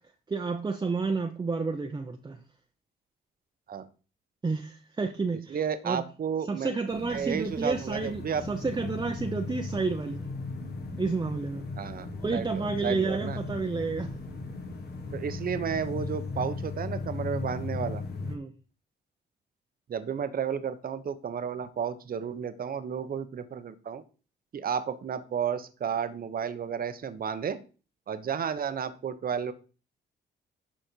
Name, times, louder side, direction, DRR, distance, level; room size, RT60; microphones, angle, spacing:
voice 1, 0.3-2.4 4.4-5.6 5.8-6.0 6.5-10.2 11.0-11.6 12.2-14.1 18.2-18.5, right 4 dB, 20° right, 0.9 m, -30 dB
voice 2, 5.5-6.7 7.1-8.4 11.8-13.4 15.1-18.0 19.9-24.0 24.5-27.6 28.1-29.5, right 7 dB, 50° right, 1.0 m, -32 dB
sound 1, 6.9-18.4, left 3 dB, 55° left, 2.1 m, -37 dB
11.5 x 4.3 x 4.6 m
cardioid pair, 90°, 20 cm